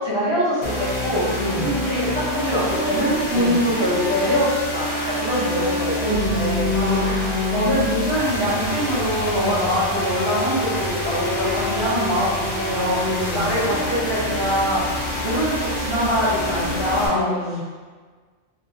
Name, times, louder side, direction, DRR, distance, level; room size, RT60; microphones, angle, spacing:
voice 1, 0.0-6.7 7.5-13.0 13.3-14.8 15.2-17.3, equal, 20° right, -13 dB, 1.2 m, -23 dB
sound 1, 0.6-17.1, left 1 dB, 55° left, 1.0 m, -26 dB
voice 2, 1.4-1.7 3.3-3.6 6.7-7.8 9.3-9.8 13.0-13.8 17.1-17.6, left 2 dB, 75° left, -7 dB, 1.3 m, -28 dB
3.6 x 2.7 x 2.6 m, 1.4 s
omnidirectional pair, 1.2 m